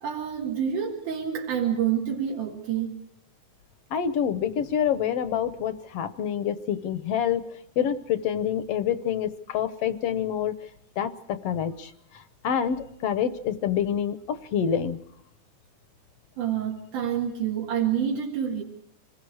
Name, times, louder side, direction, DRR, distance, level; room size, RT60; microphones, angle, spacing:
voice 1, 0.0-2.9 16.4-18.6, right 8 dB, 80° right, -2 dB, 3.6 m, -28 dB
voice 2, 3.9-7.4 7.8-10.5 11.0-15.0, left 8 dB, 65° left, 12 dB, 1.6 m, -27 dB
27.0 x 20.0 x 4.8 m, 0.73 s
omnidirectional pair, 3.5 m